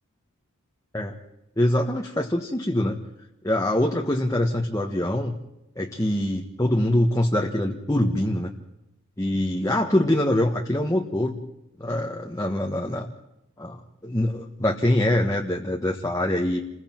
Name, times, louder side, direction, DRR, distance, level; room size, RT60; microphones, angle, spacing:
voice 1, 1.6-3.0 3.4-5.3 5.8-8.5 9.2-11.4 11.8-13.1 13.6-16.6, left 1 dB, 15° left, 0 dB, 1.4 m, -24 dB
29.5 x 22.0 x 4.5 m, 0.87 s
head